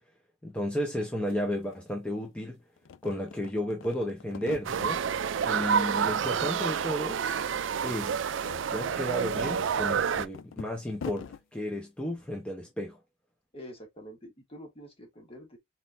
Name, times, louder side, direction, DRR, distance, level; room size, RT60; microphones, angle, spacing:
voice 1, 0.4-2.6 3.0-5.0 5.4-7.2 7.8-8.2 8.7-13.0, equal, 5° left, 0.9 m, -33 dB
sound 1, 1.0-1.1 1.3-2.4 2.8-5.0 5.4-6.1 6.4-7.3 7.5-7.7 8.2-11.4, left 6 dB, 85° left, 0.4 m, -45 dB
sound 2, 4.6-10.3, right 7 dB, 80° right, 0.4 m, -29 dB
voice 2, 5.6-5.9 13.5-15.6, equal, 30° left, 1.9 m, -46 dB
4.3 x 3.8 x 2.6 m
head